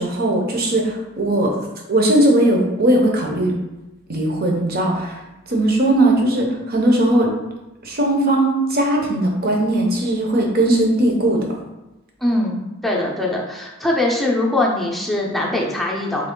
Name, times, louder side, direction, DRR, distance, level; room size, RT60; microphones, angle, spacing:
voice 1, 0.0-1.6 1.9-3.6 4.1-5.2 5.5-7.3 7.8-11.5, right 1 dB, 50° right, 0 dB, 0.8 m, -18 dB
voice 2, 12.2-16.3, left 1 dB, ahead, -3 dB, 0.6 m, -22 dB
3.7 x 3.0 x 3.7 m, 1.0 s
head